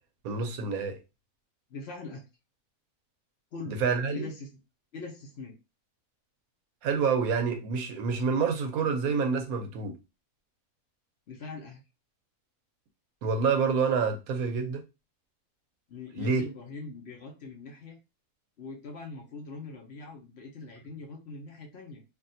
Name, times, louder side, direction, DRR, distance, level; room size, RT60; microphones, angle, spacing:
voice 1, 0.2-1.0 3.7-4.3 6.8-9.9 13.2-14.8 16.2-16.4, right 5 dB, 85° right, 1.1 m, -27 dB
voice 2, 1.7-2.2 3.5-3.8 4.1-4.5 4.9-5.6 11.3-11.8 15.9-18.0 18.6-22.0, left 3 dB, 55° left, 0.9 m, -42 dB
3.4 x 2.4 x 2.6 m
omnidirectional pair, 1.5 m